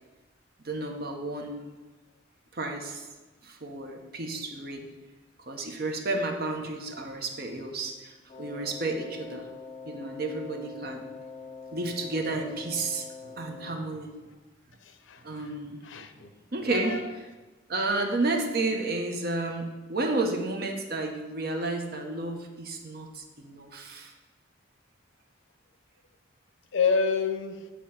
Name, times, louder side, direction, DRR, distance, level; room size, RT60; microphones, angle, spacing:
voice 1, 0.6-1.6 2.5-3.1 3.4-4.9 5.5-9.5 9.9-11.1 11.7-14.1 15.2-15.8 16.5-17.2 17.7-24.1, right 2 dB, 55° right, 3 dB, 0.9 m, -32 dB
Wind instrument woodwind instrument, 8.3-14.0, left 4 dB, 30° left, 0.7 m, -44 dB
voice 2, 14.8-15.2 15.8-16.3 16.7-17.0 26.7-27.7, left 5 dB, 85° left, 8 dB, 0.6 m, -28 dB
8.5 x 3.0 x 5.7 m, 1.3 s
head